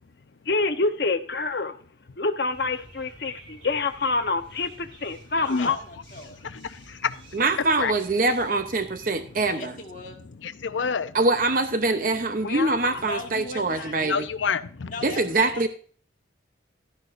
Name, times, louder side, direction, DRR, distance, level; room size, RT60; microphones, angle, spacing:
voice 1, 0.5-1.8 2.2-5.8 12.4-13.0, left 3 dB, 60° left, 0.9 m, -27 dB
sound 1, 2.5-9.5, right 2 dB, 90° right, 5.0 m, -49 dB
voice 2, 5.3-6.4 9.4-10.2 13.0-14.2 14.8-15.7, left 2 dB, 45° left, 1.6 m, -39 dB
voice 3, 6.4-7.1 7.8-8.0 10.6-11.1 14.0-14.9, left 5 dB, 85° left, 0.6 m, -27 dB
voice 4, 7.3-9.7 11.1-14.3 15.0-15.7, right 3 dB, 45° right, 0.7 m, -24 dB
12.0 x 10.5 x 2.5 m
head